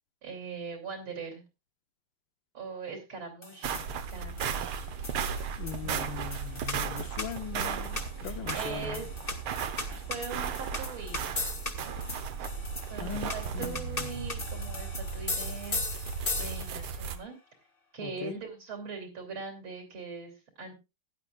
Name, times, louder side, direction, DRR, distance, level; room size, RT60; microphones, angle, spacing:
voice 1, 0.2-1.4 2.5-3.8 4.1-4.9 5.8-6.0 8.2-9.1 10.1-11.3 12.9-17.4 17.9-20.7, right 5 dB, 75° right, 3.6 m, -41 dB
sound 1, 3.4-16.9, left 3 dB, 30° left, 1.7 m, -39 dB
sound 2, 3.6-17.2, right 6 dB, 90° right, 1.9 m, -36 dB
voice 2, 5.6-9.0 13.0-14.3 18.0-18.4, left 10 dB, 70° left, 1.5 m, -41 dB
16.5 x 11.0 x 2.4 m
omnidirectional pair, 2.3 m